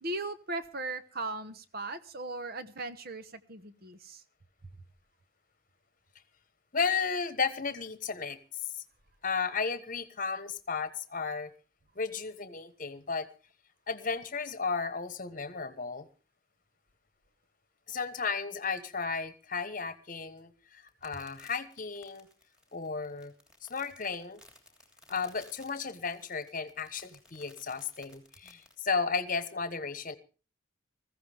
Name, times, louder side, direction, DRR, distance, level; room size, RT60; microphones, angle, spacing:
voice 1, 0.0-4.2, right 2 dB, 45° right, 12 dB, 1.1 m, -38 dB
voice 2, 6.7-8.4 9.2-11.5 11.9-13.3 13.9-16.1 17.9-22.3 22.7-23.3 23.6-24.4 25.1-30.1, left 5 dB, 40° left, 12 dB, 1.2 m, -34 dB
sound 1, 20.9-28.7, left 1 dB, 5° right, 3.0 m, -58 dB
20.5 x 15.5 x 3.5 m, 0.34 s
head